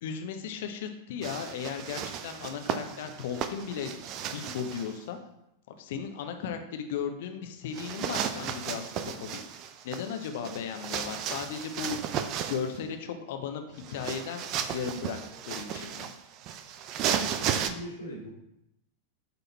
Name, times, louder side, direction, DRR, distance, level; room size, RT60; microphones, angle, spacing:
voice 1, 0.0-4.0 4.2-5.2 5.8-9.3 9.8-12.0 12.4-15.2 15.5-16.1, left 7 dB, 55° left, 6 dB, 0.9 m, -36 dB
sound 1, 1.2-5.0 7.7-12.8 13.8-17.7, right 8 dB, 40° right, 0.5 m, -34 dB
voice 2, 17.1-18.3, right 2 dB, 80° left, -7 dB, 2.0 m, -40 dB
8.3 x 4.1 x 4.2 m, 0.84 s
figure-of-eight pair, 90°, 0 cm